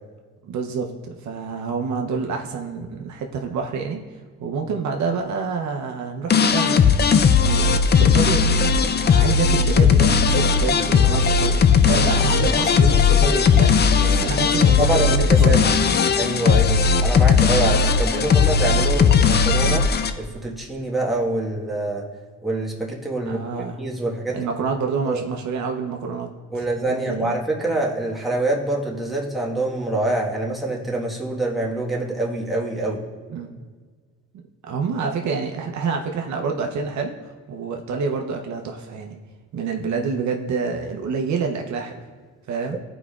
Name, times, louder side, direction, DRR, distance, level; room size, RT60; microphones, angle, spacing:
voice 1, 0.4-4.0 4.4-6.8 7.4-15.7 23.3-23.8 24.3-27.4 33.3-33.6 34.6-39.2 39.5-42.0 42.5-42.8, right 5 dB, 70° right, 3 dB, 0.8 m, -27 dB
sound 1, 6.3-20.1, left 6 dB, 35° left, 0.5 m, -17 dB
voice 2, 14.5-15.1 15.4-15.6 16.1-19.9 20.2-22.0 22.4-23.5 23.8-24.5 25.1-25.2 26.5-33.0, right 2 dB, ahead, -4 dB, 1.4 m, -25 dB
14.0 x 5.0 x 2.4 m, 1.5 s
cardioid pair, 90°, 30 cm